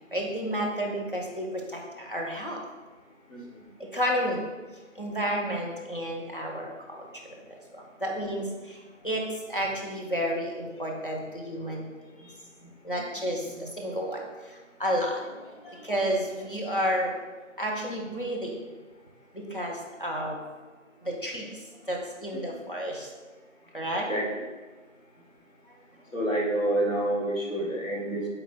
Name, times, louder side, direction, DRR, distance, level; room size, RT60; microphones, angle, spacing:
voice 1, 0.1-2.6 3.8-4.5 5.0-11.9 12.8-17.2 17.6-18.6 19.3-20.5 21.0-23.1 23.7-24.1, equal, 45° left, -2 dB, 0.5 m, -31 dB
voice 2, 26.1-28.3, right 1 dB, 80° left, -3 dB, 1.3 m, -28 dB
3.9 x 2.2 x 4.3 m, 1.3 s
figure-of-eight pair, 170°, 39 cm